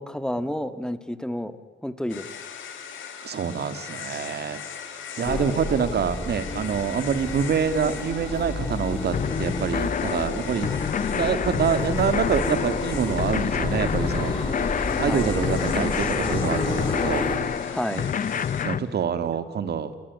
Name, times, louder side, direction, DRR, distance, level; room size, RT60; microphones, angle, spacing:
voice 1, 0.0-1.6 1.8-2.3 5.2-5.5 15.0-15.3 17.6-18.1, equal, 5° left, 12 dB, 1.7 m, -30 dB
sound 1, 2.1-18.7, left 7 dB, 75° left, 4.2 m, -39 dB
voice 2, 3.2-4.6 5.2-10.7 11.1-14.4 14.9-17.2 17.9-18.1 18.6-20.0, right 7 dB, 55° right, 11 dB, 2.2 m, -26 dB
sound 2, 5.2-17.4, left 2 dB, 25° left, 5.6 m, -30 dB
sound 3, 9.1-18.8, left 8 dB, 45° left, 0.8 m, -28 dB
28.5 x 20.5 x 9.7 m, 1.4 s
cardioid pair, 90°, 20 cm